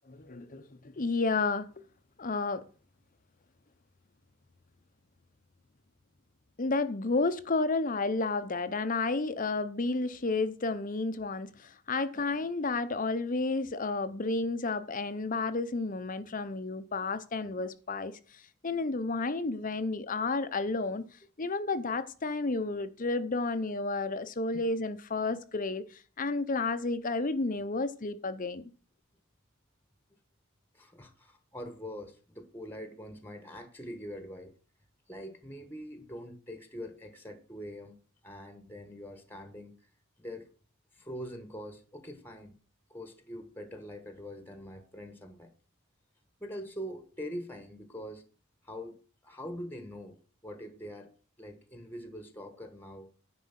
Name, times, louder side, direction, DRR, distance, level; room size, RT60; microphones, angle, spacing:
voice 1, 0.1-1.7 2.2-2.6 6.6-18.1 18.6-21.0 21.4-25.8 26.2-28.7, left 3 dB, 40° left, 0.7 m, -31 dB
voice 2, 30.7-34.5 35.1-37.9 38.2-39.7 40.2-40.5 40.9-42.6 42.9-45.5 46.4-48.2 48.6-49.0 49.2-50.2 50.4-51.1 51.4-53.1, equal, 10° left, 1.2 m, -43 dB
10.5 x 4.8 x 7.3 m
head